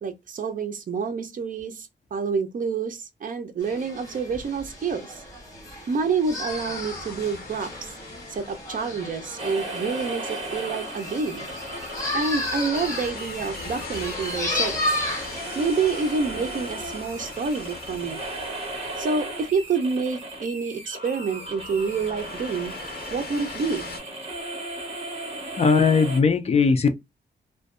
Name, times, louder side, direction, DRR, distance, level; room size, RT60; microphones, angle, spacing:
voice 1, 0.0-5.1 5.9-7.9 8.3-11.5 12.1-14.8 15.5-18.2 19.0-22.7 23.1-23.9, right 5 dB, 45° right, 0.6 m, -28 dB
sound 1, 3.6-16.2, left 1 dB, 15° left, 1.2 m, -33 dB
sound 2, 6.5-9.8 10.6-20.2 20.9-24.0, left 4 dB, 55° left, 1.0 m, -40 dB
sound 3, 9.4-26.2, right 2 dB, 30° right, 1.2 m, -36 dB
voice 2, 25.6-26.9, left 5 dB, 35° left, 0.5 m, -19 dB
2.5 x 2.2 x 2.3 m
wide cardioid pair, 140°, 19 cm